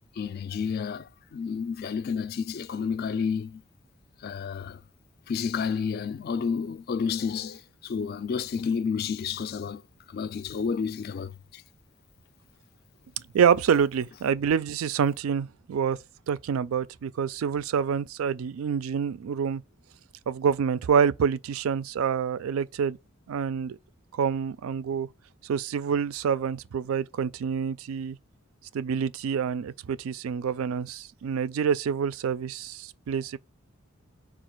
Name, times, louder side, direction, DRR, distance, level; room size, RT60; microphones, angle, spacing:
voice 1, 0.2-3.6 4.2-4.8 5.3-9.8 10.1-11.6, left 6 dB, 50° left, 0.3 m, -30 dB
voice 2, 13.3-16.0 16.3-19.6 20.3-23.0 23.3-23.8 24.1-25.1 25.4-28.2 28.7-33.4, right 7 dB, 90° right, 0.3 m, -27 dB
4.8 x 2.4 x 4.4 m
head